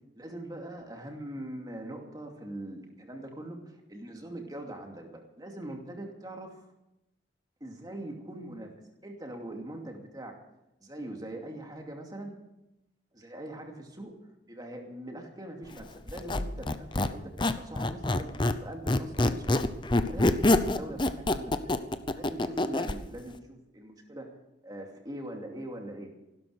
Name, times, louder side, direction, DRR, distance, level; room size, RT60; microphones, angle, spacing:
voice 1, 0.2-6.6 7.6-8.7 9.0-10.4 10.8-12.3 13.1-14.2 14.5-19.8 20.1-21.8 22.1-24.3 24.6-26.2, right 1 dB, 20° right, 2 dB, 2.5 m, -42 dB
Squeak, 16.1-18.6 18.9-23.0, left 2 dB, 25° left, 0.7 m, -26 dB
16.0 x 12.5 x 6.6 m, 0.92 s
head